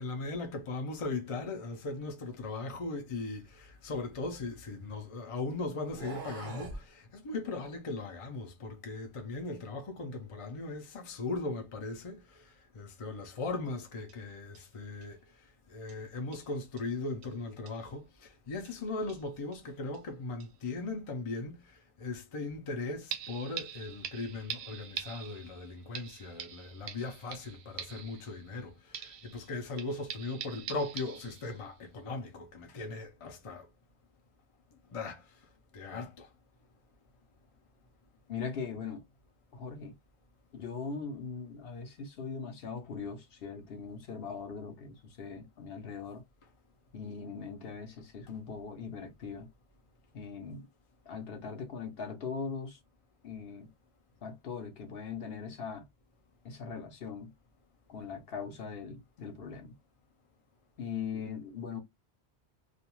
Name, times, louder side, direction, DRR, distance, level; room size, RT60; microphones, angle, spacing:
voice 1, 0.0-15.2 15.7-33.7 34.9-35.3 35.7-36.3, left 3 dB, 40° left, 0.5 m, -38 dB
sound 1, 3.6-5.1 5.8-6.8, right 3 dB, 50° right, 1.0 m, -45 dB
sound 2, 13.7-13.8 14.1-14.2 14.5-14.6 15.0-15.1 15.9-16.0 16.3-16.5 16.8-16.9 17.2-17.3 17.7-17.8 18.6-18.8 19.1-19.6 19.9-20.0 20.4-20.5 23.1-28.6 28.9-31.7 32.1-32.2, right 9 dB, 75° right, 0.8 m, -44 dB
voice 2, 38.3-39.0 39.5-40.0 40.5-46.2 46.9-49.5 50.1-50.7 51.1-52.8 53.2-53.7 54.2-55.9 56.4-57.3 57.9-59.8 60.8-61.8, left 5 dB, 65° left, 0.9 m, -40 dB
2.4 x 2.3 x 2.9 m
omnidirectional pair, 1.1 m